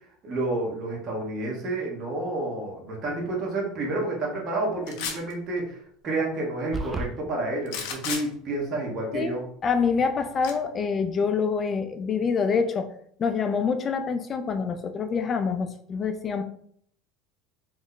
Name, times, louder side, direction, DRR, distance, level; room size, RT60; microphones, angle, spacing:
voice 1, 0.2-9.5, right 2 dB, 45° right, -1 dB, 1.3 m, -30 dB
sound 1, 4.9-5.3 7.7-8.2 10.4-10.5, left 6 dB, 70° left, 0.7 m, -32 dB
sound 2, 6.7-7.1, right 2 dB, 20° right, 0.5 m, -31 dB
voice 2, 9.6-12.9 13.2-16.4, left 5 dB, 35° left, 7 dB, 0.4 m, -26 dB
3.1 x 2.1 x 3.9 m, 0.63 s
hypercardioid pair, 90°, 0 cm